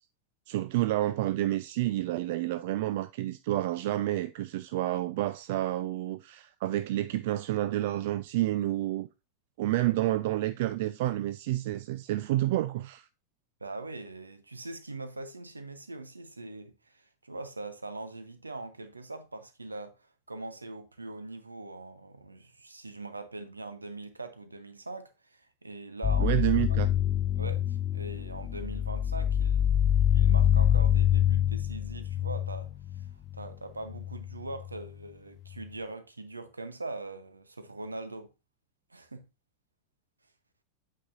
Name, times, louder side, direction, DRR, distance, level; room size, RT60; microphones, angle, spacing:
voice 1, 0.5-9.1 9.6-13.1 26.2-26.9, right 15 dB, 50° right, 0.3 m, -29 dB
voice 2, 13.6-26.4 26.7-26.8 27.4-38.3 38.9-39.3, right 2 dB, 80° right, 0.9 m, -42 dB
sound 1, 26.0-33.5 33.9-34.8, left 10 dB, 30° left, 0.4 m, -26 dB
8.6 x 5.1 x 2.6 m
figure-of-eight pair, 90°, 0 cm